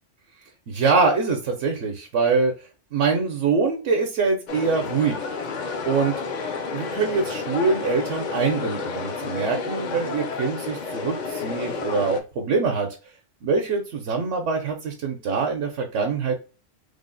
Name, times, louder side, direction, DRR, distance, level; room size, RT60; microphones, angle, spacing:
voice 1, 0.7-5.2 5.9-6.2 6.7-12.9 13.4-16.4, right 4 dB, 75° right, 2 dB, 1.0 m, -24 dB
sound 1, 4.5-12.2, left 5 dB, 55° left, 0.5 m, -31 dB
3.5 x 2.0 x 3.8 m, 0.33 s
omnidirectional pair, 1.2 m